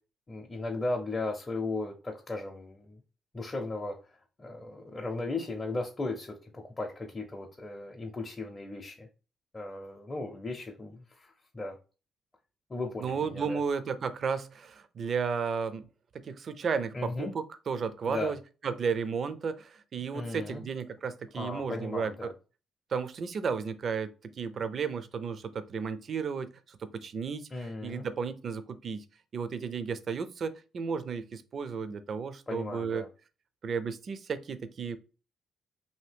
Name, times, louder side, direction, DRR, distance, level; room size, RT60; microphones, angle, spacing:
voice 1, 0.3-3.0 3.3-9.1 9.5-11.8 12.7-13.6 16.9-17.3 18.0-18.4 20.1-20.6 21.3-22.3 27.5-28.0 32.5-33.1, left 2 dB, 25° left, 0.5 m, -36 dB
voice 2, 13.0-15.9 16.2-18.4 18.6-22.3 22.9-29.0 29.3-33.0 33.6-35.0, right 5 dB, 50° right, 0.4 m, -33 dB
2.7 x 2.6 x 3.3 m
cardioid pair, 90°, 0 cm